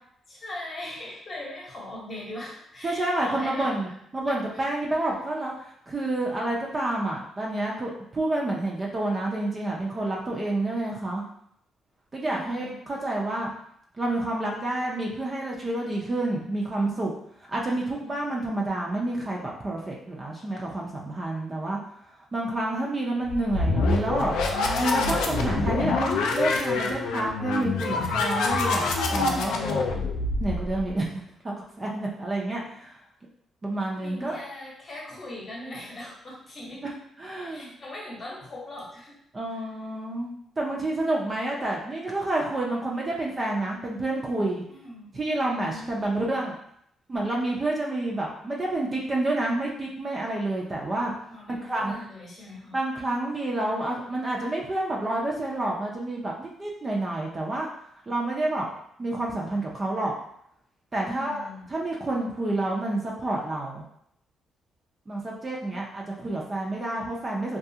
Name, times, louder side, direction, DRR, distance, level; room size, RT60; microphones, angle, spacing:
voice 1, 0.3-3.9 4.5-4.6 12.2-12.8 34.0-36.8 37.4-39.2 39.5-39.6 44.7-45.2 45.6-46.4 51.3-52.8 61.0-61.7 65.7-65.8, left 1 dB, 35° left, -4 dB, 0.9 m, -40 dB
voice 2, 2.8-11.2 12.1-13.5 14.0-17.1 17.5-21.8 22.3-24.3 24.8-29.5 30.4-33.0 33.6-34.4 36.6-36.7 37.2-37.7 39.3-44.6 45.1-46.5 47.1-51.1 51.5-52.0 52.7-57.7 58.1-58.7 59.0-60.1 60.9-63.8 65.1-67.6, right 2 dB, 25° right, -2 dB, 0.5 m, -29 dB
sound 1, 23.3-30.9, left 3 dB, 90° left, 0.3 m, -26 dB
2.3 x 2.3 x 2.7 m, 0.70 s
cardioid pair, 110°, 0 cm